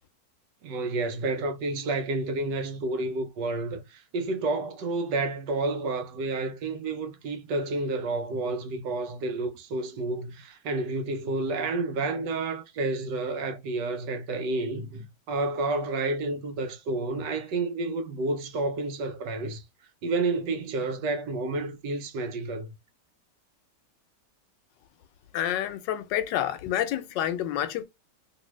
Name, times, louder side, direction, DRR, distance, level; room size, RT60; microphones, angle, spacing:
voice 1, 0.6-19.6 20.0-22.7, right 2 dB, 80° right, 1.3 m, -30 dB
voice 2, 25.3-27.8, left 11 dB, 90° left, 1.2 m, -28 dB
3.1 x 2.7 x 3.0 m
omnidirectional pair, 1.9 m